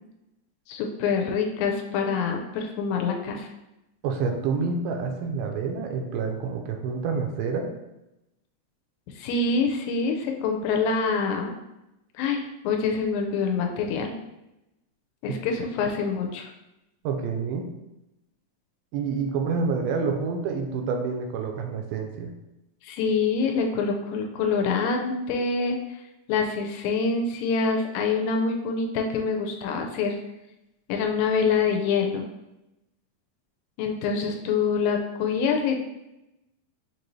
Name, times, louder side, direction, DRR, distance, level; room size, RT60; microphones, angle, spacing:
voice 1, 0.7-3.5 9.2-11.5 12.2-14.1 15.2-16.5 22.8-25.8 26.3-30.2 30.9-32.2 33.8-35.8, left 5 dB, 85° left, 2 dB, 2.3 m, -25 dB
voice 2, 4.0-7.7 17.0-17.7 18.9-22.3, right 5 dB, 80° right, 4 dB, 2.3 m, -28 dB
6.1 x 2.6 x 3.0 m, 0.92 s
omnidirectional pair, 4.1 m